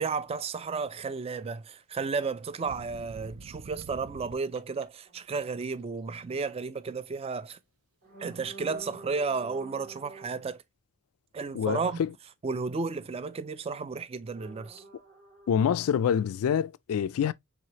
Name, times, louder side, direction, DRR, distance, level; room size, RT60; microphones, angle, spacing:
voice 1, 0.0-7.6 8.2-10.6 11.3-12.0 12.4-14.8, right 4 dB, 25° right, 0.3 m, -33 dB
sound 1, 2.6-4.8 5.2-5.6, right 3 dB, 65° right, 0.6 m, -47 dB
sound 2, 5.0-5.2 6.2-6.4 8.0-10.5 14.3-16.3, right 3 dB, 45° right, 2.0 m, -49 dB
voice 2, 11.5-12.1 15.5-17.3, left 8 dB, 70° left, 0.3 m, -26 dB
4.8 x 3.3 x 2.8 m
head